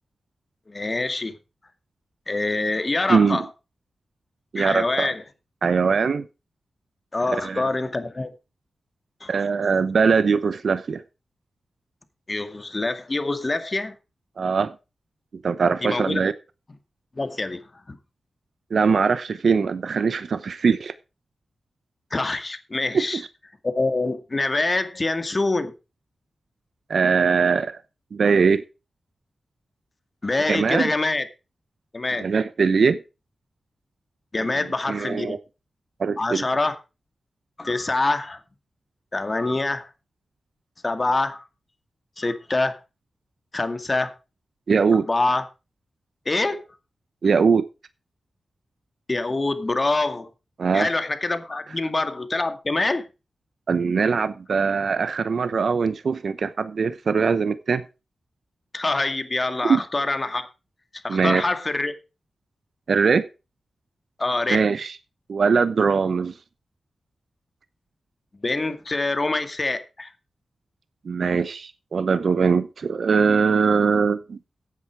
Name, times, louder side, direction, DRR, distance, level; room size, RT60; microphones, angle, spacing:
voice 1, 0.7-1.3 2.3-3.4 4.6-5.2 7.1-8.3 9.2-9.4 12.3-13.9 15.8-16.2 17.2-17.6 17.9-18.0 22.1-23.2 23.6-25.7 30.2-31.2 31.9-32.3 34.3-35.4 36.2-36.8 37.6-38.4 39.1-39.9 40.8-41.4 42.2-42.8 43.5-44.1 45.1-45.4 46.3-46.7 49.1-50.3 50.7-53.0 58.7-60.5 61.0-61.9 64.2-64.6 68.4-70.1, left 2 dB, 40° left, 2.1 m, -25 dB
voice 2, 3.1-3.4 4.5-5.1 5.6-6.2 7.4-7.7 9.3-11.0 14.4-14.7 15.4-16.3 18.7-20.9 22.9-23.2 26.9-27.8 28.1-28.6 30.5-30.9 32.2-33.0 34.4-34.5 34.9-35.4 36.0-36.4 44.7-45.1 47.2-47.7 50.6-50.9 53.7-57.8 59.6-59.8 61.1-61.4 62.9-63.3 64.5-65.0 65.3-66.3 71.0-74.4, right 5 dB, 70° right, 0.9 m, -21 dB
15.0 x 8.5 x 4.7 m
cardioid pair, 50°, 0 cm